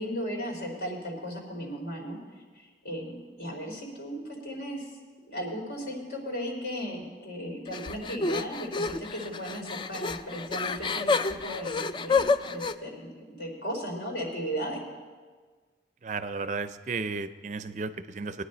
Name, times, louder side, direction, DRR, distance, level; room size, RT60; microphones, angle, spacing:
voice 1, 0.0-2.2 2.6-4.9 5.3-14.8, equal, 65° left, 0 dB, 3.2 m, -36 dB
sound 1, 7.7-12.7, left 4 dB, 25° left, 0.3 m, -29 dB
voice 2, 16.0-18.4, right 4 dB, 40° right, 12 dB, 0.4 m, -34 dB
21.0 x 9.7 x 4.2 m, 1.5 s
head